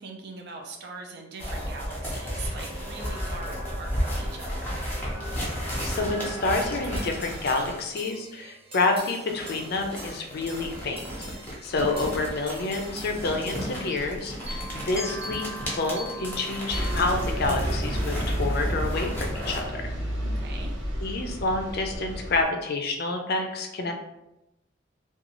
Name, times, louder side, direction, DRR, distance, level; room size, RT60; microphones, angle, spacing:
voice 1, 0.0-4.9 20.2-20.8, right 3 dB, 60° right, 3 dB, 0.5 m, -42 dB
sound 1, 1.4-8.0 9.2-19.6, equal, 10° left, 0.7 m, -33 dB
sound 2, 2.1-14.1 14.5-17.0, right 1 dB, 30° right, 0.8 m, -42 dB
voice 2, 5.4-11.0 11.6-19.9 21.0-23.9, left 3 dB, 55° left, 4 dB, 0.4 m, -28 dB
Bus, 16.7-22.4, equal, 75° right, 0.8 m, -31 dB
2.6 x 2.3 x 2.9 m, 0.89 s
head